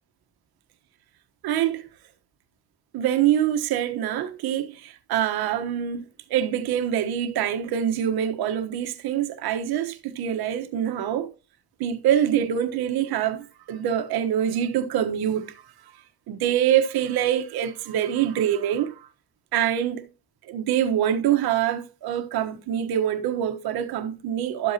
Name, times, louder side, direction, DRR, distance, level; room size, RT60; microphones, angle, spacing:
voice 1, 1.4-1.8 2.9-6.0 6.3-11.3 11.8-15.5 16.3-18.9 19.5-20.0 20.5-24.7, right 10 dB, 85° right, 1.2 m, -25 dB
12.5 x 8.0 x 2.8 m
cardioid pair, 150°, 37 cm